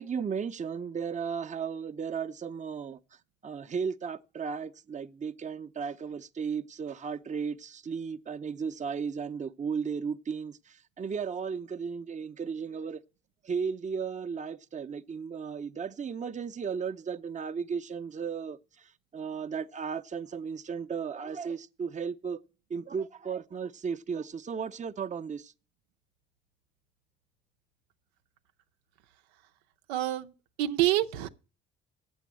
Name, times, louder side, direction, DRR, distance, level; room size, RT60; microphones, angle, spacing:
voice 1, 0.0-3.0 3.4-13.0 13.4-22.4 22.7-25.5, right 6 dB, 20° right, 0.6 m, -35 dB
voice 2, 29.9-30.3 30.6-31.3, right 14 dB, 80° right, 0.6 m, -27 dB
8.2 x 7.1 x 7.4 m
hypercardioid pair, 55°, 33 cm